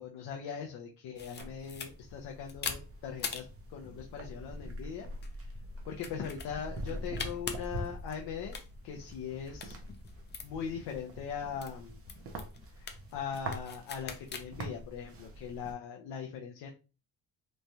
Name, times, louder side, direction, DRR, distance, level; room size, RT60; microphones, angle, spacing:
voice 1, 0.0-5.1 5.3-5.5 5.9-8.6 8.8-9.8 10.4-12.0 12.7-16.7, left 7 dB, 80° left, 1 dB, 0.6 m, -40 dB
sound 1, 1.2-14.4, left 5 dB, 30° left, 0.4 m, -45 dB
sound 2, 1.4-15.7, right 1 dB, 35° right, 0.5 m, -45 dB
3.1 x 2.2 x 2.6 m, 0.33 s
cardioid pair, 120°, 39 cm